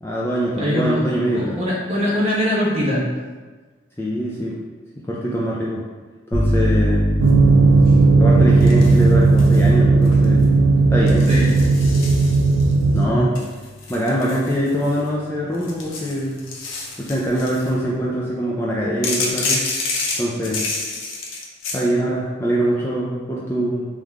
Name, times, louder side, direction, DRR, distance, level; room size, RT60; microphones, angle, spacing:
voice 1, 0.0-1.6 4.0-4.5 5.1-5.8 6.3-7.0 8.1-10.5 10.9-11.3 12.9-13.3 13.9-16.4 17.0-19.6 20.2-20.6 21.7-23.9, equal, 15° left, -5 dB, 0.4 m, -23 dB
voice 2, 0.6-1.0 1.3-3.0 11.3-11.5 13.0-13.3, equal, 30° right, -6 dB, 1.0 m, -22 dB
sound 1, 6.3-14.0, equal, 40° left, 1.1 m, -25 dB
sound 2, 7.2-13.1, right 3 dB, 80° right, 0.4 m, -15 dB
sound 3, 8.6-9.7 10.0-10.4 11.1-12.7 13.3-15.1 15.5-17.7 19.0-21.8, left 3 dB, 90° left, 0.7 m, -29 dB
3.6 x 3.3 x 3.5 m, 1.4 s
head